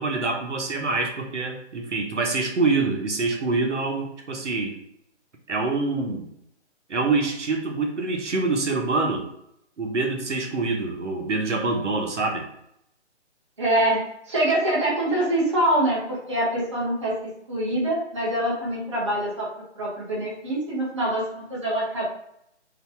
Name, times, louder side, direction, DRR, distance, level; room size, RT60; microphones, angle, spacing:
voice 1, 0.0-4.8 5.5-6.3 6.9-9.3 9.8-12.5, right 3 dB, 75° right, 1 dB, 1.1 m, -25 dB
voice 2, 13.6-14.0 14.3-19.5 19.8-22.0, right 1 dB, 25° right, -6 dB, 0.9 m, -24 dB
4.0 x 2.3 x 4.3 m, 0.76 s
hypercardioid pair, 175°, 36 cm